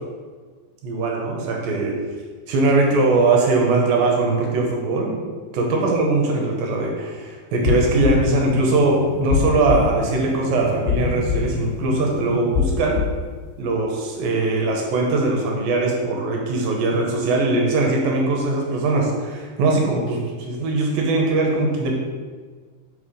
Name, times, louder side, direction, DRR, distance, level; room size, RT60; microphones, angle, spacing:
voice 1, 0.8-2.0 2.5-5.2 5.5-13.0 13.6-21.9, right 3 dB, 70° right, 0 dB, 2.3 m, -21 dB
sound 1, 7.6-13.3, left 6 dB, 80° left, 2.5 m, -25 dB
5.6 x 4.8 x 5.0 m, 1.5 s
omnidirectional pair, 4.8 m